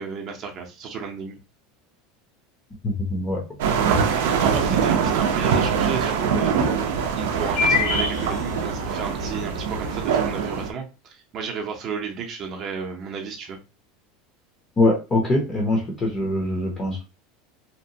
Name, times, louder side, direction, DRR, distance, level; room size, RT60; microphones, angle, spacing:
voice 1, 0.0-1.4 3.9-6.9 7.1-13.6, right 6 dB, 35° right, 0.6 m, -33 dB
voice 2, 2.8-3.6 14.8-17.0, left 2 dB, 20° left, 0.6 m, -23 dB
sound 1, 3.6-10.7, right 6 dB, 80° right, 0.4 m, -23 dB
sound 2, 5.4-5.5 5.8-5.9 7.2-8.8 9.3-9.4 9.8-10.2, left 5 dB, 65° left, 0.9 m, -25 dB
2.8 x 2.1 x 2.6 m
supercardioid pair, 160°, 0 cm